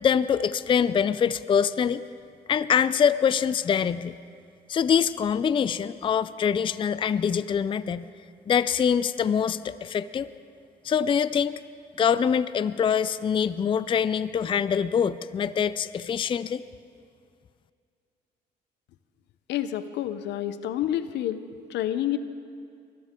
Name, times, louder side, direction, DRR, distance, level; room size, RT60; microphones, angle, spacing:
voice 1, 0.0-2.0 2.5-4.2 4.7-8.1 8.5-10.3 10.8-11.6 12.0-16.6, left 7 dB, 30° left, 15 dB, 0.4 m, -24 dB
voice 2, 19.5-21.4 21.7-22.2, left 12 dB, 85° left, 12 dB, 0.7 m, -28 dB
23.0 x 14.0 x 3.7 m, 2.3 s
cardioid pair, 100°, 18 cm